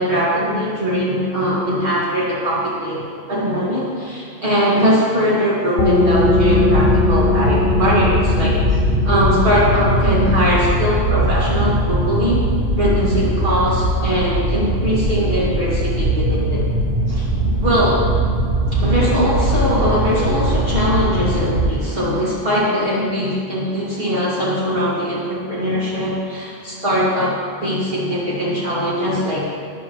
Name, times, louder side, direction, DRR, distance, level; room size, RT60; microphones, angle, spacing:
voice 1, 0.0-8.8 9.0-12.4 12.8-16.6 17.1-17.3 17.6-18.0 18.7-27.3 27.6-29.5, equal, 60° right, -8 dB, 2.6 m, -20 dB
sound 1, 5.8-17.2, left 3 dB, 50° left, 1.0 m, -23 dB
sound 2, 6.2-21.8, right 1 dB, 85° right, 1.2 m, -20 dB
13.0 x 10.5 x 3.1 m, 2.2 s
omnidirectional pair, 1.1 m